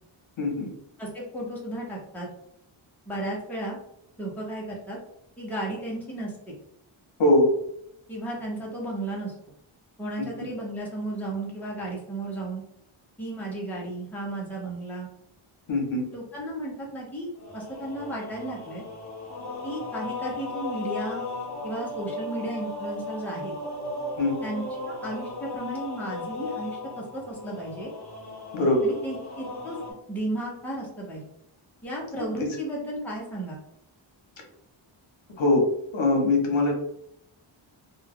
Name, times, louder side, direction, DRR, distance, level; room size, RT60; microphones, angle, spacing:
voice 1, 0.4-0.7 7.2-7.5 10.2-10.3 15.7-16.0 24.2-24.3 28.5-28.8 32.2-32.5 35.4-35.6 35.9-36.7, left 2 dB, 70° left, 1 dB, 0.8 m, -22 dB
voice 2, 1.0-2.3 3.1-3.8 4.2-5.0 5.4-6.5 8.1-9.3 10.0-12.6 13.2-15.1 16.1-18.8 19.6-21.3 21.6-23.6 24.4-27.9 28.8-29.8 30.1-31.2 31.8-33.6, right 1 dB, 5° left, -4 dB, 0.6 m, -34 dB
sound 1, 17.4-29.9, left 2 dB, 35° left, 0.8 m, -36 dB
2.3 x 2.2 x 3.3 m, 0.75 s
wide cardioid pair, 155°, 49 cm